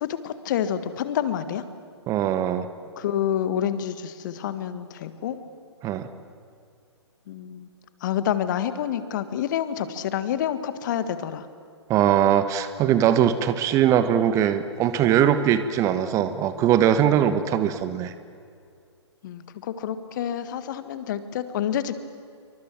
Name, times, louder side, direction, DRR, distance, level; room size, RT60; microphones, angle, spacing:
voice 1, 0.0-1.6 2.9-5.4 7.3-7.7 8.0-11.5 17.1-17.4 19.2-22.0, left 10 dB, 40° left, 12 dB, 1.6 m, -28 dB
voice 2, 2.1-2.7 5.8-6.1 11.9-18.1, right 10 dB, 20° right, 11 dB, 1.1 m, -21 dB
27.5 x 24.0 x 7.6 m, 2.3 s
figure-of-eight pair, 125°, 15 cm